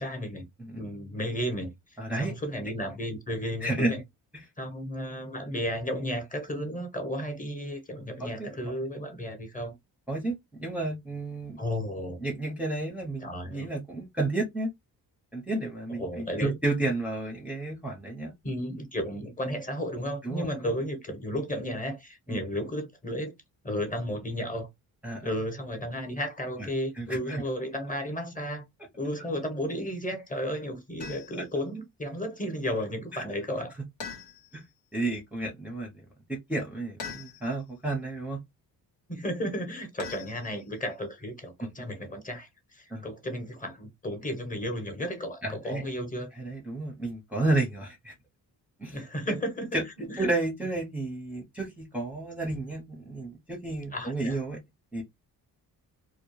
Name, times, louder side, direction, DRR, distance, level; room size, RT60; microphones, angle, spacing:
voice 1, 0.0-0.4 0.8-4.0 4.6-9.7 11.6-12.2 13.2-13.7 15.9-16.5 18.4-23.3 23.6-24.7 25.2-28.6 29.0-33.7 39.1-46.3 48.9-49.7 50.0-50.3 52.5-52.6 53.9-54.4, equal, 20° left, 1.0 m, -33 dB
voice 2, 2.0-2.3 3.6-3.9 8.2-8.8 10.1-11.6 12.2-14.7 15.3-18.3 20.2-20.5 22.3-22.4 25.0-25.3 26.6-26.7 27.0-27.4 31.4-31.5 33.1-33.2 34.5-34.6 34.9-38.4 42.9-43.0 45.4-45.8 46.4-48.2 48.8-49.0 49.3-49.4 49.7-49.8 50.2-54.6 54.9-55.0, right 2 dB, 5° right, 0.7 m, -31 dB
sound 1, 31.0-31.5 34.0-34.7 37.0-37.7 40.0-40.9, left 5 dB, 90° left, 1.1 m, -42 dB
2.2 x 2.1 x 3.1 m
cardioid pair, 75°, 40 cm